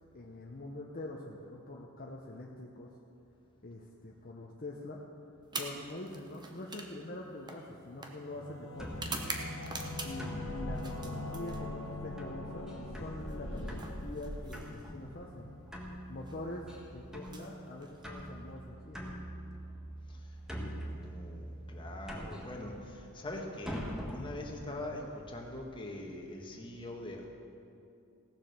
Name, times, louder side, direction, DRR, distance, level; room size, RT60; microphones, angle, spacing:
voice 1, 0.1-2.9 3.6-5.0 5.6-8.9 10.0-15.5 16.1-19.1, left 2 dB, 40° left, -1 dB, 0.9 m, -44 dB
sound 1, 5.4-10.4 10.7-12.0 13.2-15.0 16.1-16.4 17.1-18.3, right 3 dB, 20° right, 1.0 m, -44 dB
Singing / Musical instrument, 7.6-16.8, left 2 dB, 75° left, 1.3 m, -44 dB
sound 2, 8.7-25.6, equal, 5° right, 1.5 m, -44 dB
voice 2, 9.6-10.0 20.1-20.2 20.8-23.8 24.1-27.3, left 1 dB, 25° left, 0 dB, 1.5 m, -43 dB
16.5 x 7.3 x 6.7 m, 2.7 s
head